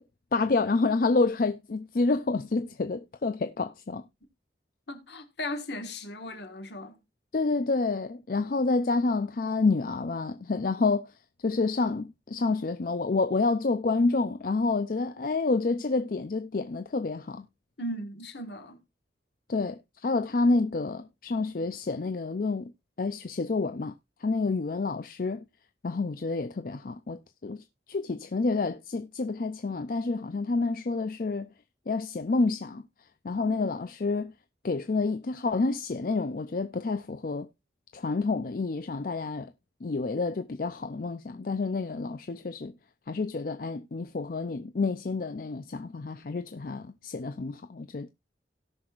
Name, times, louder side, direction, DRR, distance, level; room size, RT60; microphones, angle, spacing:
voice 1, 0.3-4.0 7.3-11.1 11.4-17.5 19.5-22.7 23.0-23.9 24.2-25.4 25.8-31.5 31.9-32.8 33.2-34.3 34.6-37.5 37.9-39.5 39.8-42.7 43.1-48.1, left 3 dB, 50° left, 0.5 m, -28 dB
voice 2, 4.9-7.0 17.8-18.8 33.4-33.7, left 1 dB, 65° left, 1.7 m, -37 dB
17.5 x 6.1 x 2.4 m
head